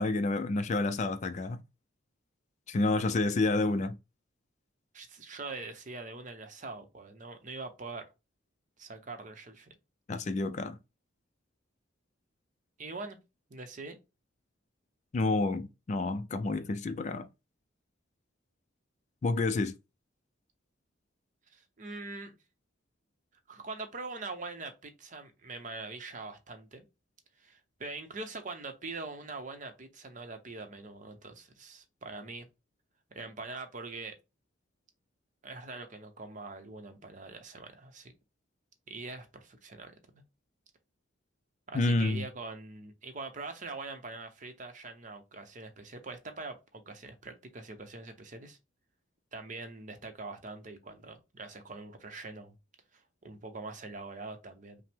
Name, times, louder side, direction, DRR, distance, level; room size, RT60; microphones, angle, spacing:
voice 1, 0.0-1.6 2.7-4.0 10.1-10.8 15.1-17.3 19.2-19.7 41.7-42.2, left 2 dB, 35° left, 0.3 m, -29 dB
voice 2, 4.9-8.1 8.8-9.7 12.8-13.2 13.5-14.0 21.5-22.4 23.5-26.8 27.4-32.5 33.1-34.1 35.4-38.1 38.9-40.2 41.7-48.6 49.3-52.6 52.9-54.8, right 3 dB, 40° right, 0.7 m, -43 dB
5.5 x 2.0 x 3.4 m
head